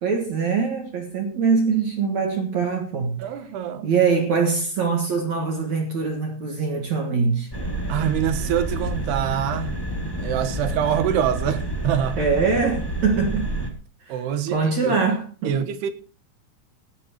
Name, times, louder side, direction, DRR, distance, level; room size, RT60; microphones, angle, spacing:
voice 1, 0.0-3.2 3.8-7.5 12.2-13.5 14.0-14.2 14.5-15.5, right 5 dB, 55° right, 2.2 m, -23 dB
voice 2, 3.2-3.9 7.9-9.8 10.2-12.2 14.1-15.0 15.4-15.9, right 9 dB, 75° right, 3.1 m, -25 dB
sound 1, 7.5-13.7, right 1 dB, 40° left, 0.3 m, -29 dB
18.0 x 13.0 x 2.9 m
omnidirectional pair, 5.0 m